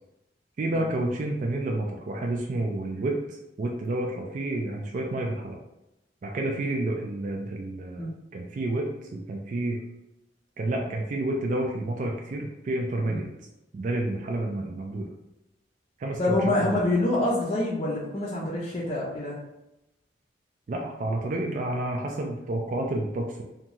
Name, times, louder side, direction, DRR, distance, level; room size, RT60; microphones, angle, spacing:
voice 1, 0.6-5.6 6.2-9.8 10.6-13.3 13.7-15.1 16.0-16.9 20.7-23.4, right 2 dB, 45° right, 0 dB, 0.3 m, -30 dB
voice 2, 16.2-19.4, left 2 dB, 30° left, -6 dB, 0.5 m, -26 dB
2.6 x 2.3 x 2.9 m, 0.91 s
head